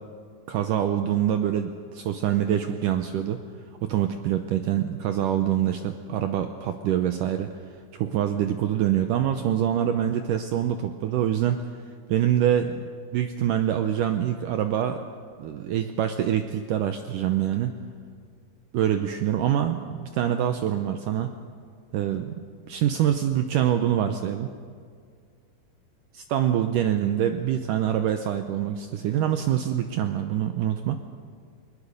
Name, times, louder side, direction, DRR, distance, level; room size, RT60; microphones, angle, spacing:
voice 1, 0.5-3.4 3.8-7.5 7.9-11.7 12.1-12.8 13.1-15.0 15.4-17.7 18.7-21.3 21.9-24.5 26.3-31.0, right 10 dB, 80° right, 7 dB, 1.9 m, -25 dB
21.0 x 20.0 x 6.7 m, 2.1 s
omnidirectional pair, 4.7 m